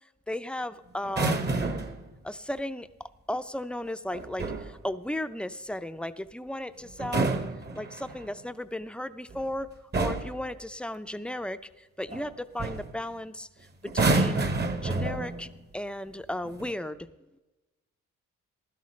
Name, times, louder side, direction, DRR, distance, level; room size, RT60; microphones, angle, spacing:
voice 1, 0.3-1.7 2.2-2.9 3.3-7.4 7.7-13.5 13.8-14.5 14.8-15.5 15.7-17.1, left 1 dB, 5° left, 11 dB, 0.5 m, -35 dB
sound 1, 1.0-2.0 4.1-4.7 6.9-8.3 9.3-9.5 9.9-10.4 12.1-12.3 12.6-12.9 13.8-15.5 16.4-16.7, right 3 dB, 35° right, 1.0 m, -28 dB
15.5 x 12.5 x 3.2 m, 1.1 s
cardioid pair, 90°, 30 cm